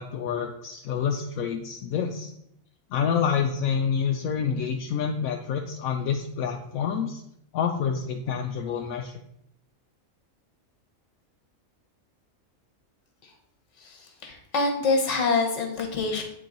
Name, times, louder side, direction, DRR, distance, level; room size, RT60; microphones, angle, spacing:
voice 1, 0.0-2.3 2.9-7.2 7.5-9.2, left 7 dB, 80° left, 3 dB, 1.0 m, -28 dB
voice 2, 13.8-16.2, left 3 dB, 60° left, 3 dB, 1.4 m, -26 dB
8.4 x 3.7 x 3.9 m, 0.75 s
omnidirectional pair, 1.5 m